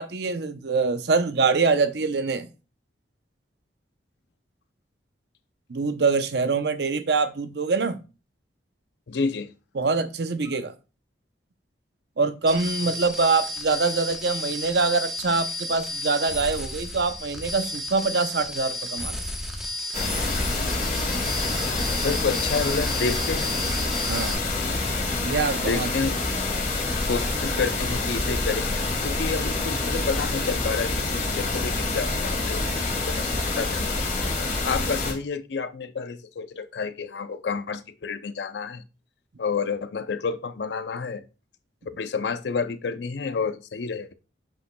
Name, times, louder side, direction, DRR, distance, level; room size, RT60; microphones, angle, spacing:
voice 1, 0.0-2.5 5.7-8.0 9.8-10.7 12.2-19.2 24.1-24.5 25.2-25.9, right 4 dB, 60° right, 0.6 m, -24 dB
voice 2, 9.1-9.5 12.9-13.0 21.6-23.6 24.0-24.4 25.6-26.1 27.1-38.8 39.4-41.2 42.0-44.1, left 5 dB, 65° left, 0.5 m, -30 dB
sound 1, 12.5-24.3, left 1 dB, ahead, 0.9 m, -33 dB
sound 2, 19.9-35.1, left 2 dB, 40° left, 2.0 m, -27 dB
7.7 x 5.6 x 2.2 m
head